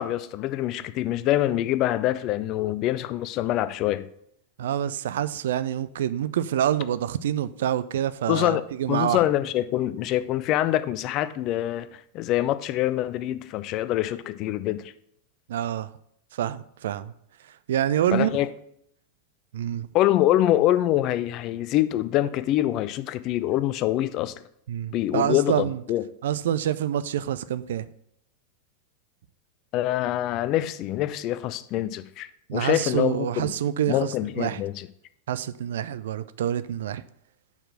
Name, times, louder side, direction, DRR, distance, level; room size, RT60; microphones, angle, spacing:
voice 1, 0.0-4.1 8.3-8.6 8.9-14.9 18.1-18.5 19.9-24.3 24.9-26.0 29.7-33.5 33.9-34.9, left 14 dB, 40° left, 0.4 m, -25 dB
voice 2, 4.6-9.2 15.5-15.9 16.3-17.1 17.7-18.3 19.5-19.9 24.7-25.8 26.2-27.9 32.5-34.6 35.3-37.0, right 10 dB, 60° right, 0.3 m, -27 dB
5.8 x 4.5 x 6.4 m
figure-of-eight pair, 90°, 0 cm